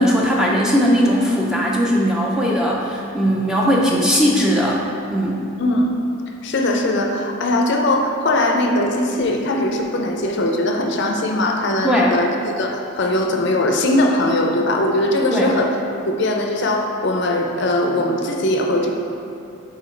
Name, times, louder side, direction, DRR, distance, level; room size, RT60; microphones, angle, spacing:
voice 1, 0.0-4.8 5.1-5.4 11.8-12.1 15.3-15.5, equal, 5° right, -3 dB, 0.4 m, -18 dB
voice 2, 5.6-5.9 6.4-15.7 16.1-18.9, left 1 dB, 50° left, 2 dB, 0.5 m, -20 dB
4.8 x 4.5 x 4.4 m, 2.6 s
head